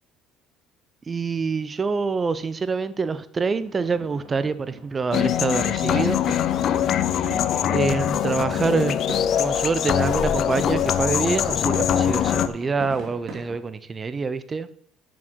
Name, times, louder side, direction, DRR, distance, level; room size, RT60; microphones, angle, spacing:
voice 1, 1.1-6.2 7.7-9.0 9.4-14.7, right 4 dB, 25° right, 15 dB, 0.6 m, -26 dB
sound 1, 3.5-13.6, right 3 dB, 45° right, 3.0 m, -42 dB
sound 2, 5.1-12.5, left 9 dB, 55° left, 0.6 m, -23 dB
6.9 x 6.2 x 6.2 m, 0.65 s
supercardioid pair, 100°, 0 cm